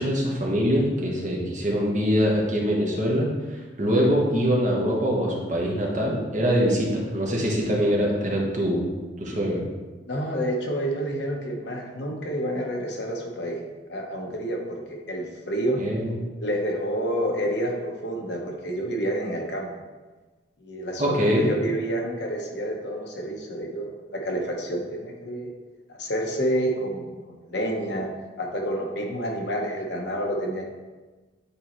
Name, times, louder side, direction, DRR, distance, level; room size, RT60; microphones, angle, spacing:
voice 1, 0.0-8.8 9.2-9.6 15.8-16.2 21.0-21.5, equal, 40° right, -3 dB, 1.2 m, -23 dB
voice 2, 10.1-13.6 13.9-15.8 16.4-19.7 20.6-25.5 25.9-28.1 28.4-30.7, right 1 dB, 60° left, 1 dB, 0.9 m, -29 dB
8.3 x 4.2 x 3.0 m, 1.3 s
head